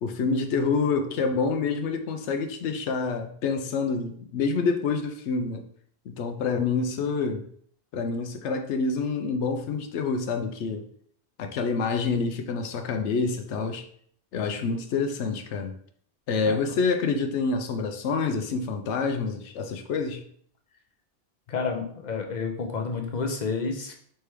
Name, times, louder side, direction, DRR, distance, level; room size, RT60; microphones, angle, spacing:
voice 1, 0.0-5.6 6.1-7.4 7.9-10.8 11.4-13.9 14.3-15.7 16.3-20.2, left 4 dB, 85° left, 6 dB, 0.9 m, -27 dB
voice 2, 21.5-23.9, left 4 dB, 45° left, 4 dB, 0.7 m, -30 dB
3.3 x 3.3 x 4.5 m, 0.62 s
omnidirectional pair, 1.1 m